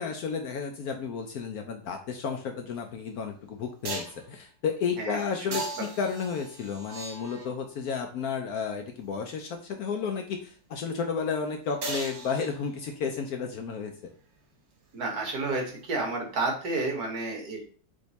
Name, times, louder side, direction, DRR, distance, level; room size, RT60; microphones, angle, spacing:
voice 1, 0.0-13.9, left 6 dB, 70° left, 4 dB, 0.9 m, -32 dB
sound 1, 2.8-2.9 3.8-4.3 5.5-7.7 11.8-12.9 16.8-16.9, right 3 dB, 75° right, 1.8 m, -37 dB
voice 2, 5.0-5.5 14.9-17.7, right 3 dB, 60° right, 1 dB, 1.7 m, -31 dB
3.7 x 3.4 x 4.0 m, 0.42 s
omnidirectional pair, 2.0 m